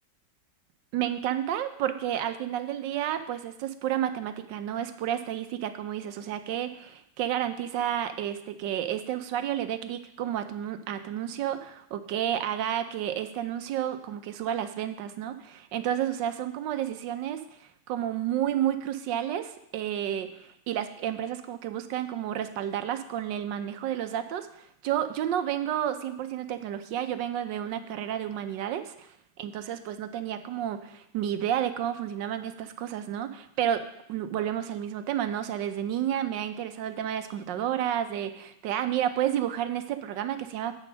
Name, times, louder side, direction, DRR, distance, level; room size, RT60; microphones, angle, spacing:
voice 1, 0.9-29.1 29.4-33.8 34.1-40.8, right 10 dB, 80° right, 9 dB, 1.3 m, -31 dB
8.5 x 5.2 x 6.2 m, 0.76 s
omnidirectional pair, 2.0 m